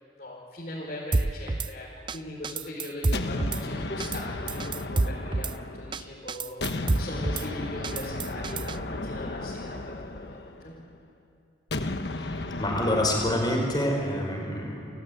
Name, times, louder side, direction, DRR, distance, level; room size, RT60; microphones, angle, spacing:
voice 1, 0.2-1.9 2.1-10.7, left 1 dB, 45° left, -5 dB, 4.6 m, -39 dB
Drum kit / Snare drum, 1.1-1.7 2.1-2.2 2.4-3.6 4.0-4.2 4.5-5.5 5.9-6.0 6.3-7.5 7.8-8.8, right 2 dB, 25° right, 0.5 m, -28 dB
sound 1, 3.1-6.1 6.6-10.9 11.7-13.8, left 2 dB, 70° left, 1.3 m, -34 dB
voice 2, 12.2-15.0, left 1 dB, 25° left, 1 dB, 5.4 m, -27 dB
29.5 x 15.0 x 9.6 m, 2.8 s
head